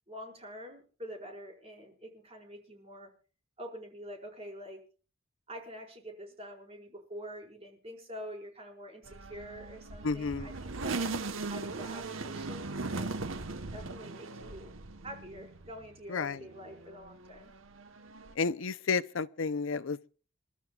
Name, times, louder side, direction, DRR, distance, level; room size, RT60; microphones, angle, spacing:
voice 1, 0.1-3.1 3.6-4.8 5.5-11.1 11.5-13.2 13.7-14.7 15.0-17.5, equal, 30° right, 4.8 m, -46 dB
sound 1, 9.1-15.9 16.4-18.3, right 3 dB, 80° right, 1.1 m, -39 dB
voice 2, 10.0-10.5 16.1-16.4 18.4-20.1, left 5 dB, 80° left, 0.6 m, -31 dB
29.0 x 12.5 x 2.3 m
head